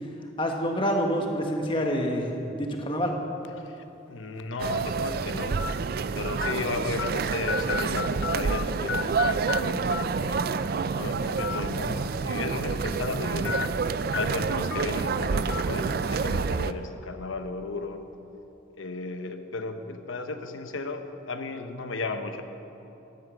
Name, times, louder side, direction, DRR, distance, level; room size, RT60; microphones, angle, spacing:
voice 1, 0.4-3.1, equal, 25° left, 2 dB, 1.4 m, -27 dB
sound 1, 3.4-3.7 4.4-4.5 5.6-5.7 6.4-6.5 7.0-7.1 7.5-8.6 8.9-9.6 9.9-10.0 11.3-11.6 12.0-12.1 13.4-13.7 14.1-14.2 14.7-14.8 15.5-15.6, left 7 dB, 65° left, 0.4 m, -31 dB
voice 2, 3.5-5.6 6.1-10.4 11.0-13.7 14.1-18.0 18.8-22.4, left 3 dB, 85° left, 7 dB, 1.0 m, -35 dB
sound 2, 4.6-16.7, right 5 dB, 50° right, 0.4 m, -28 dB
14.5 x 11.5 x 6.3 m, 2.9 s
head